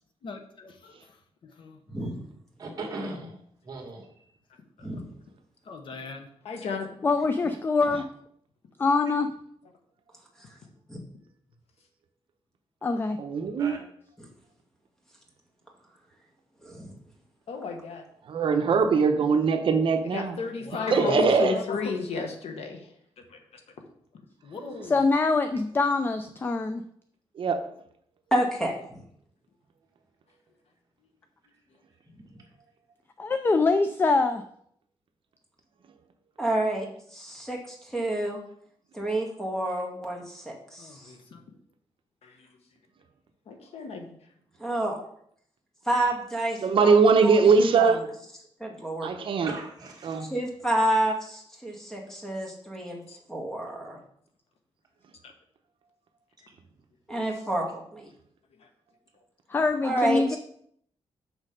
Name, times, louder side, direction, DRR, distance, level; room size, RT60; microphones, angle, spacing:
voice 1, 0.2-1.8 5.6-6.3 20.6-21.9 24.4-25.0 40.8-41.4, left 4 dB, 55° left, 5 dB, 1.0 m, -39 dB
voice 2, 2.6-3.4 3.6-4.2 13.6-13.8 21.0-21.4 49.5-50.3, right 2 dB, 40° right, 0 dB, 2.0 m, -37 dB
voice 3, 6.4-7.0 17.5-18.0 20.1-22.9 23.3-23.4 42.2-42.5 43.5-44.1 53.1-53.2 55.2-55.3, left 4 dB, 85° left, 4 dB, 1.3 m, -33 dB
voice 4, 7.0-8.0 8.8-9.3 12.8-13.2 24.9-26.8 33.2-34.4 59.5-60.4, left 3 dB, 20° left, 9 dB, 0.4 m, -24 dB
voice 5, 13.2-13.8 18.3-20.4 20.9-21.5 27.4-27.6 46.6-48.0 49.0-49.5 50.0-50.3, right 5 dB, 55° right, 6 dB, 0.9 m, -21 dB
voice 6, 16.6-16.9 28.3-29.0 36.4-38.4 38.9-41.1 44.6-45.0 45.8-46.9 47.2-48.0 48.6-49.1 50.2-53.0 53.3-54.0 57.1-58.1 59.8-60.4, right 1 dB, 5° left, -1 dB, 1.8 m, -29 dB
6.5 x 6.2 x 5.1 m, 0.67 s
wide cardioid pair, 165°, 10 cm